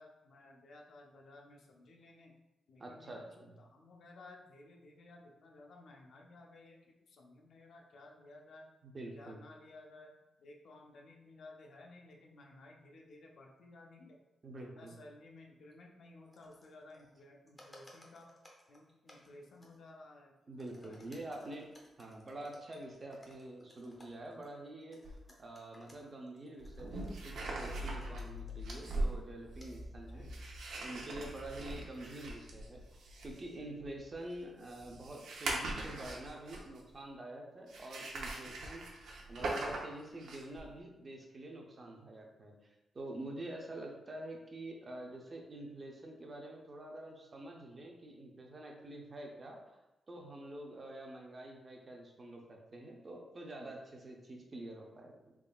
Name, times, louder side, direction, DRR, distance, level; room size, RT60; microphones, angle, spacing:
voice 1, 0.0-2.4 2.7-8.7 9.1-10.1 10.4-14.2 14.6-18.3 18.7-20.3 20.8-21.6 30.1-30.4, left 2 dB, 55° left, 1 dB, 0.5 m, -56 dB
voice 2, 2.8-3.5 8.8-9.4 14.4-14.9 20.5-21.7 22.0-30.3 30.8-42.5 42.9-49.6 50.1-55.4, right 1 dB, 25° right, 0 dB, 0.5 m, -47 dB
sound 1, 15.7-15.8 16.2-17.2 17.5-19.9 20.4-28.8 29.6-29.8 31.1-32.1, equal, 10° left, 0.6 m, -62 dB
sound 2, 25.0-25.2 26.6-36.9 37.7-40.6, right 2 dB, 75° right, 0.6 m, -41 dB
3.9 x 3.6 x 2.3 m, 0.98 s
wide cardioid pair, 180°, 0 cm